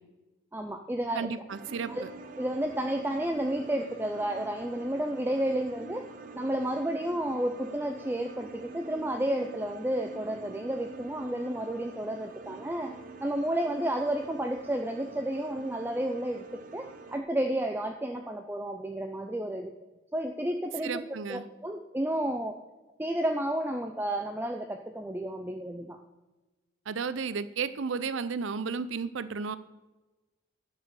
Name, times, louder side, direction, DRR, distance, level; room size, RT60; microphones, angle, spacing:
voice 1, 0.5-1.3 1.9-2.0 2.4-6.1 6.3-19.7 20.1-21.0 21.3-22.6 23.0-26.0, right 1 dB, 10° right, 5 dB, 0.5 m, -31 dB
voice 2, 1.1-1.9 20.8-21.5 26.9-29.6, right 5 dB, 75° right, 14 dB, 0.5 m, -33 dB
sound 1, 1.5-17.2, right 3 dB, 40° right, 0.7 m, -46 dB
11.5 x 4.8 x 6.8 m, 1.1 s
head